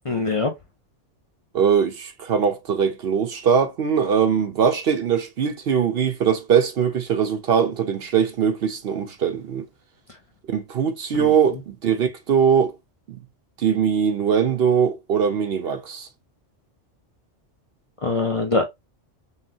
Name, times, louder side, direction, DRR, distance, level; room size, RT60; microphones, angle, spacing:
voice 1, 0.0-0.5 11.1-11.3 18.0-18.7, left 3 dB, 35° left, 0.6 m, -23 dB
voice 2, 1.5-9.6 10.5-12.7 13.1-13.2 13.6-16.1, right 7 dB, 60° right, 0.8 m, -21 dB
5.6 x 2.2 x 2.7 m
omnidirectional pair, 1.2 m